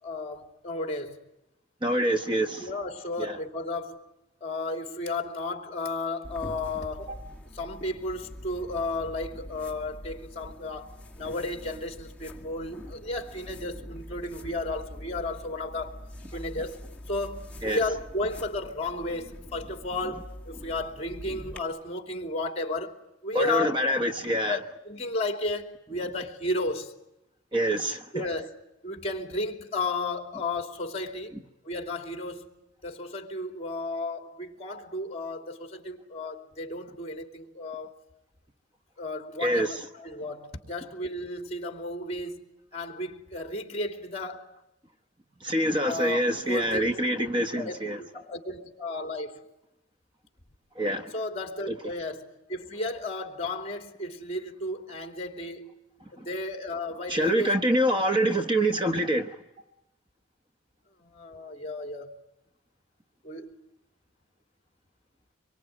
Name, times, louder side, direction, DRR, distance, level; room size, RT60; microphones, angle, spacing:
voice 1, 0.0-1.2 2.6-4.0 4.4-16.0 16.3-16.8 17.1-23.0 23.2-23.7 24.3-24.6 24.8-26.9 28.1-28.5 28.8-31.4 31.6-32.5 32.8-38.0 39.0-44.5 45.8-46.9 47.2-49.4 51.1-55.8 56.2-57.5 61.0-62.1 63.2-63.6, left 2 dB, 30° left, 3.1 m, -33 dB
voice 2, 1.8-2.7 3.2-3.4 17.6-17.8 23.3-24.6 27.5-28.1 39.4-39.8 45.4-48.0 50.7-51.1 51.7-51.8 56.2-56.3 57.1-59.4, equal, 25° right, 1.1 m, -26 dB
sound 1, 6.2-21.6, left 1 dB, 5° left, 2.1 m, -44 dB
25.5 x 23.5 x 9.4 m
head